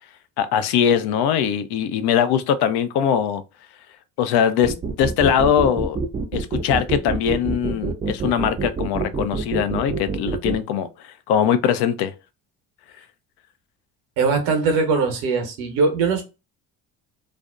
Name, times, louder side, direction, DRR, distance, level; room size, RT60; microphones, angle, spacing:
voice 1, 0.4-3.4 4.2-6.0 6.3-12.1, left 8 dB, 55° left, 0.5 m, -21 dB
sound 1, 4.6-10.6, right 4 dB, 20° right, 0.3 m, -26 dB
voice 2, 14.2-16.2, right 4 dB, 70° right, 0.9 m, -21 dB
2.5 x 2.1 x 2.3 m
hypercardioid pair, 55°, 48 cm